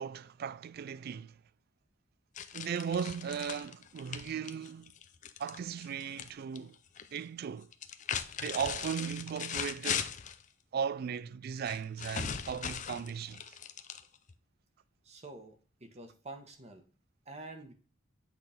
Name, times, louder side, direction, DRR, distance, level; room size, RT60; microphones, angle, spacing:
voice 1, 0.0-1.3 2.5-4.9 5.4-6.8 7.1-7.7 8.4-10.1 10.7-13.4, right 7 dB, 50° right, 0.3 m, -37 dB
sound 1, 2.3-6.3 6.5-7.2 7.7-10.4 11.6-14.3, left 8 dB, 40° left, 0.5 m, -39 dB
voice 2, 15.0-16.8 17.3-17.7, right 2 dB, 35° right, 1.2 m, -48 dB
7.8 x 4.2 x 3.4 m
head